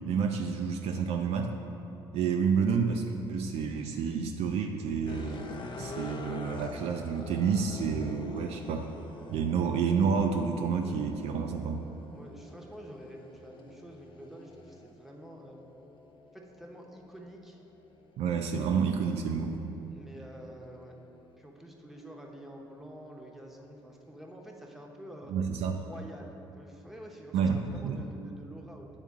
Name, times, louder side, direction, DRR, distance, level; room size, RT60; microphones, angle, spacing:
voice 1, 0.1-1.5 2.1-5.5 5.8-8.9 9.3-11.8 18.2-19.6 25.3-25.8 27.3-28.0, right 6 dB, 55° right, 4 dB, 0.4 m, -29 dB
sound 1, 5.1-21.4 22.0-24.5, left 3 dB, 40° left, 0.6 m, -48 dB
voice 2, 12.1-15.6 16.3-17.6 19.9-21.0 21.4-25.3 25.7-28.9, equal, ahead, 0 dB, 0.9 m, -48 dB
8.8 x 3.6 x 3.6 m, 2.9 s
hypercardioid pair, 55°, 13 cm